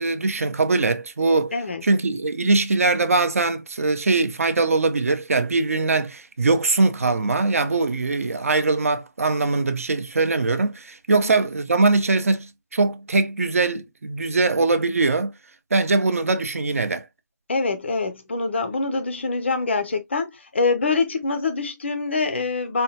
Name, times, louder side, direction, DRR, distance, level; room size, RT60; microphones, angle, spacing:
voice 1, 0.0-1.5 1.8-15.3 15.7-17.1, right 3 dB, 45° right, 0.6 m, -21 dB
voice 2, 1.5-1.8 11.1-11.4 17.5-22.8, left 3 dB, 35° left, 0.5 m, -25 dB
4.3 x 2.2 x 2.7 m
figure-of-eight pair, 165°, 11 cm